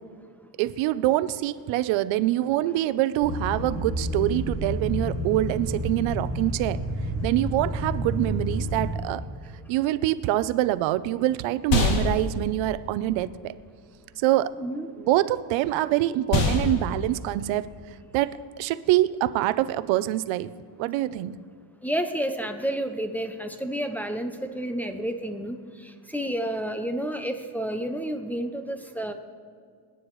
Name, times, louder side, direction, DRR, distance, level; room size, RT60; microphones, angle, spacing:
voice 1, 0.6-6.8 7.2-9.2 9.7-13.5 14.2-14.5 15.0-17.7 18.1-20.5 20.8-21.4, right 15 dB, 80° right, 15 dB, 0.7 m, -25 dB
sound 1, 3.2-8.9, equal, 35° left, 2.1 m, -30 dB
sound 2, 10.3-20.0, left 3 dB, 85° left, 2.5 m, -30 dB
voice 2, 14.6-14.9 21.8-29.1, right 1 dB, 5° left, 5 dB, 0.4 m, -30 dB
27.5 x 9.4 x 3.1 m, 2.1 s
cardioid pair, 155°, 46 cm